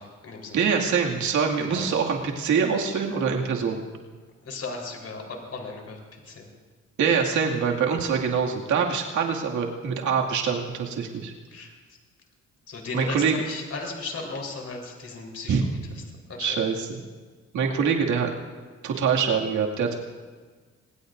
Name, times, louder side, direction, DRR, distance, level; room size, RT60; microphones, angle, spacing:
voice 1, 0.0-0.6 1.6-1.9 4.4-6.5 11.5-11.7 12.7-15.6 15.9-16.0 16.3-16.6, left 3 dB, 50° left, 1 dB, 4.1 m, -36 dB
voice 2, 0.5-3.8 7.0-11.3 12.9-13.4 15.5-15.6 16.4-16.7 17.5-18.3 18.8-19.9, right 6 dB, 75° right, 0 dB, 2.3 m, -24 dB
25.5 x 20.0 x 2.6 m, 1.4 s
cardioid pair, 90°, 30 cm